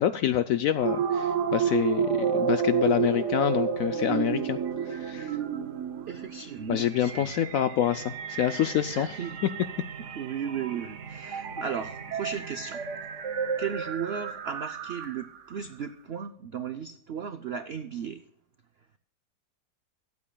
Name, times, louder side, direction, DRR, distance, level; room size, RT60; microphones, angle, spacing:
voice 1, 0.0-4.6 4.9-5.3 6.7-9.5, left 10 dB, 70° left, 11 dB, 0.8 m, -27 dB
sound 1, 0.8-15.4, right 7 dB, 50° right, 1.1 m, -31 dB
voice 2, 6.1-7.3 8.9-9.4 10.0-12.8 13.6-18.2, right 7 dB, 75° right, 10 dB, 0.5 m, -35 dB
24.0 x 8.4 x 2.3 m, 0.71 s
omnidirectional pair, 1.9 m